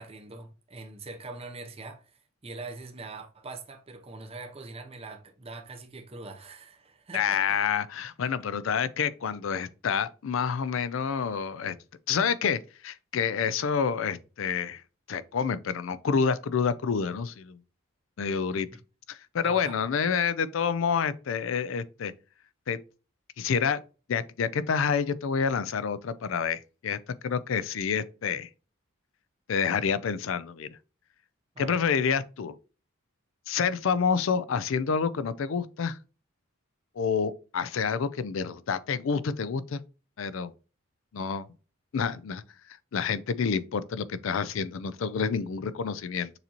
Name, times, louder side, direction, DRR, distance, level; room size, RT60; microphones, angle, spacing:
voice 1, 0.0-7.5 19.4-19.8 31.5-31.8, right 3 dB, 30° right, 0.7 m, -43 dB
voice 2, 7.1-11.8 12.1-14.8 15.1-17.6 18.2-18.7 19.1-22.1 22.7-22.8 23.4-23.8 24.1-27.0 27.2-28.5 29.5-30.7 31.6-32.5 33.5-36.0 37.0-39.8 40.2-40.5 41.1-41.5 41.9-42.4 42.9-46.3, left 6 dB, 65° left, 0.4 m, -28 dB
6.7 x 2.7 x 2.9 m
head